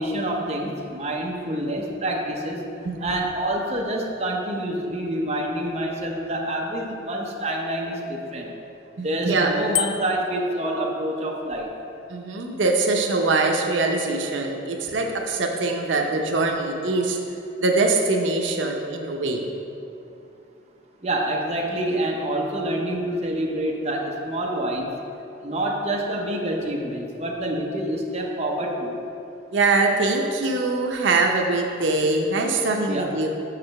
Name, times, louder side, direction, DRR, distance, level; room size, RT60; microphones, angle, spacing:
voice 1, 0.0-2.6 3.0-8.5 9.0-11.7 21.0-24.9 25.4-29.0 32.9-33.1, right 1 dB, 35° right, -1 dB, 0.8 m, -27 dB
voice 2, 9.0-9.5 12.1-17.2 17.6-19.4 29.5-33.3, right 3 dB, 80° right, 2 dB, 0.7 m, -23 dB
Bicycle bell, 9.7-10.4, left 11 dB, 75° left, 0.4 m, -27 dB
6.5 x 4.9 x 5.8 m, 2.7 s
head